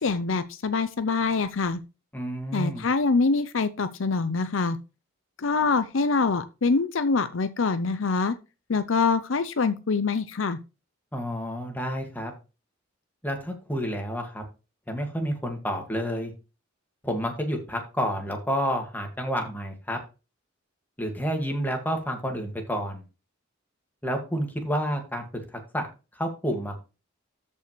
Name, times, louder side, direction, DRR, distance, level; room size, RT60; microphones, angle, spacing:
voice 1, 0.0-1.8 2.5-4.8 5.4-8.4 8.7-10.6, left 4 dB, 70° left, 0.6 m, -25 dB
voice 2, 2.1-2.8 11.1-12.3 13.2-14.4 14.9-16.3 17.0-20.0 21.0-23.0 24.0-25.2 25.7-25.9 26.2-26.7, equal, 10° left, 2.0 m, -29 dB
13.5 x 5.4 x 3.2 m
head